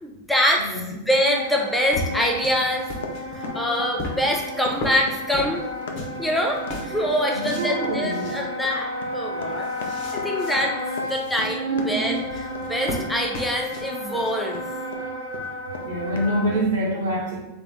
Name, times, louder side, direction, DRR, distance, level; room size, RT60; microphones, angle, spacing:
voice 1, 0.0-2.9 3.3-5.6 6.2-9.8 10.1-10.8 11.1-12.2 12.6-14.6, equal, 5° left, 0 dB, 0.5 m, -24 dB
voice 2, 0.6-0.9 7.3-8.4 11.7-12.2 15.8-17.4, right 1 dB, 60° right, -2 dB, 1.2 m, -26 dB
Wind instrument woodwind instrument, 1.1-16.6, left 1 dB, 80° left, 1.0 m, -32 dB
sound 1, 1.1-6.2 6.5-7.7 8.0-8.4 8.8-8.9 9.3-10.6 10.9-11.4 12.1-14.3, left 1 dB, 45° left, 1.0 m, -35 dB
Run, 2.6-15.0 15.3-16.7, left 5 dB, 60° left, 0.5 m, -38 dB
3.7 x 3.4 x 3.6 m, 0.93 s
figure-of-eight pair, 90°, 0 cm